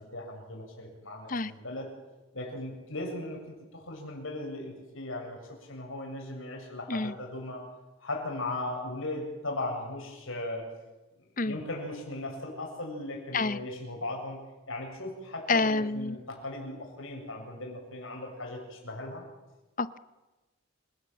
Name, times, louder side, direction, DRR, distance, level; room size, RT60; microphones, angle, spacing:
voice 1, 0.0-1.9 2.3-7.7 8.0-10.7 11.4-19.2, left 2 dB, 70° left, 1 dB, 7.7 m, -38 dB
voice 2, 15.5-16.2 19.8-20.0, left 3 dB, 40° left, 14 dB, 0.9 m, -28 dB
28.5 x 18.5 x 8.9 m, 1.1 s
head